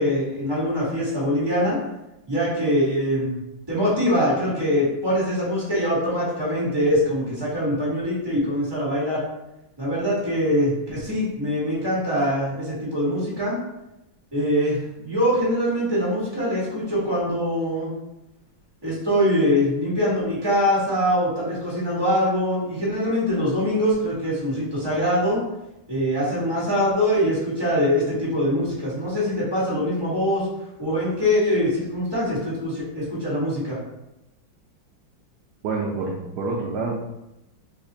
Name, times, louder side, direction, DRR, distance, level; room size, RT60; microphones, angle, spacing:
voice 1, 0.0-1.8 2.3-3.4 3.7-9.2 9.8-13.6 14.3-17.9 18.8-25.4 25.9-30.5 30.8-33.8, equal, 15° right, -8 dB, 1.2 m, -23 dB
voice 2, 35.6-36.9, right 3 dB, 80° right, -1 dB, 0.9 m, -27 dB
3.3 x 2.4 x 3.9 m, 0.90 s
omnidirectional pair, 2.3 m